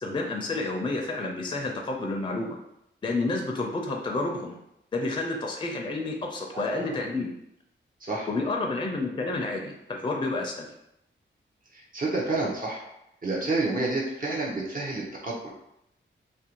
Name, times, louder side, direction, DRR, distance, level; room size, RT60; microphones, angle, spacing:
voice 1, 0.0-2.6 3.0-4.6 4.9-7.3 8.3-10.7, left 2 dB, 25° left, 1 dB, 0.4 m, -30 dB
voice 2, 6.5-7.0 8.0-8.3 11.7-12.8 13.2-15.6, right 2 dB, 45° right, -3 dB, 0.6 m, -29 dB
2.5 x 2.1 x 2.8 m, 0.81 s
wide cardioid pair, 80°, 20 cm